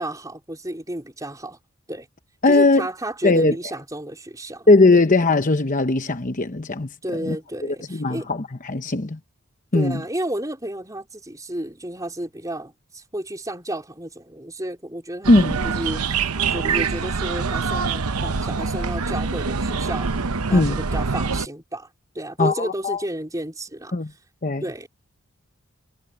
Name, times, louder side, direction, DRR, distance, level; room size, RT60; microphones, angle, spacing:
voice 1, 0.0-1.6 1.9-2.1 2.5-5.0 7.0-8.3 9.7-16.2 16.5-20.1 20.4-21.9 22.1-23.9 24.6-24.9, right 1 dB, 15° right, 4.4 m, -32 dB
voice 2, 2.4-2.9 3.2-3.6 4.7-6.9 7.2-7.4 7.6-9.2 9.7-10.0 15.3-15.5 20.5-20.8 22.4-23.0 23.9-24.1 24.4-24.6, left 2 dB, 35° left, 0.9 m, -19 dB
sound 1, 15.2-21.5, right 5 dB, 85° right, 0.9 m, -25 dB
head